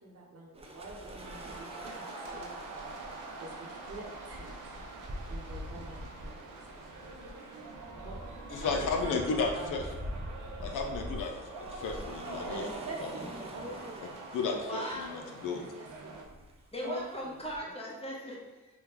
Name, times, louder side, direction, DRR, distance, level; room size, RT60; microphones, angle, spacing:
voice 1, 0.0-2.9 3.4-4.8 5.3-7.0 7.9-8.2 8.6-9.8 12.5-14.2 15.4-16.5 16.8-17.3, right 2 dB, 50° right, -2 dB, 0.8 m, -45 dB
sound 1, 0.5-17.6, equal, 20° right, 0.4 m, -45 dB
sound 2, 1.2-16.2, right 3 dB, 85° right, 0.6 m, -45 dB
voice 2, 8.5-9.8 10.6-11.3 11.8-12.6 14.3-14.8 15.1-15.6, left 4 dB, 80° left, 2 dB, 0.5 m, -32 dB
voice 3, 14.5-15.3 16.7-18.7, equal, 20° left, -3 dB, 0.9 m, -39 dB
3.5 x 2.3 x 3.0 m, 1.1 s
cardioid pair, 75°, 31 cm